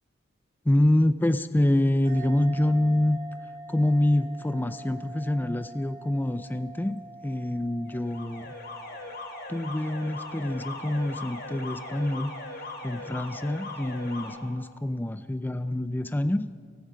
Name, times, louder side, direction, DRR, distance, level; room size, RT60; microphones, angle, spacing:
voice 1, 0.7-3.2 3.7-8.5 9.5-12.3 12.8-16.5, left 1 dB, 10° left, 11 dB, 0.4 m, -26 dB
sound 1, 2.0-11.1, right 3 dB, 40° right, 3.0 m, -45 dB
Alarm, 7.8-14.3, left 2 dB, 55° left, 3.8 m, -39 dB
29.5 x 18.5 x 5.1 m, 2.2 s
head